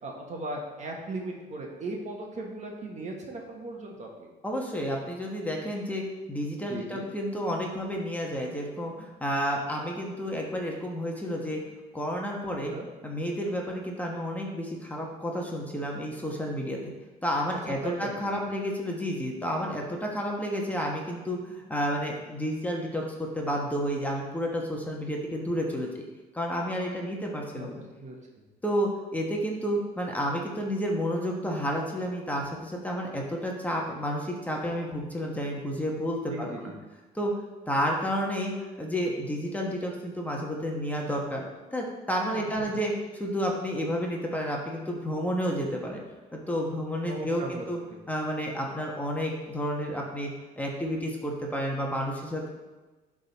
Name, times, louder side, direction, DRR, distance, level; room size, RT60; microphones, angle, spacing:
voice 1, 0.0-4.3 6.7-7.1 12.7-12.9 17.8-18.4 27.6-27.7 28.0-28.2 36.3-36.8 42.3-42.7 47.1-47.7, right 2 dB, 45° right, 0 dB, 1.4 m, -37 dB
voice 2, 4.4-6.0 6.3-11.6 11.9-12.7 13.0-16.9 17.2-26.0 26.3-27.8 28.6-36.7 37.1-37.3 37.7-46.0 46.3-47.8 48.1-50.3 50.6-52.5, equal, 10° left, -1 dB, 1.2 m, -31 dB
11.0 x 3.8 x 4.1 m, 1.2 s
cardioid pair, 110°, 17 cm